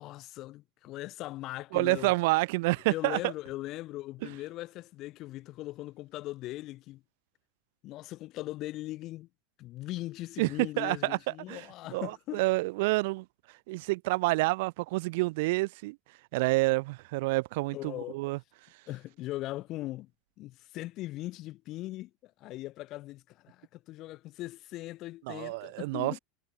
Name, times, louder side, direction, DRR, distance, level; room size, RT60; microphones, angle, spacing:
voice 1, 0.0-2.1 2.9-7.0 7.8-9.3 9.6-12.4 17.7-18.2 18.9-20.1 20.4-26.2, left 17 dB, 40° left, 3.6 m, -40 dB
voice 2, 1.7-3.3 10.4-11.7 11.9-13.3 13.7-16.0 16.3-18.4 25.3-26.2, right 23 dB, 65° right, 2.2 m, -28 dB
supercardioid pair, 160°, 0 cm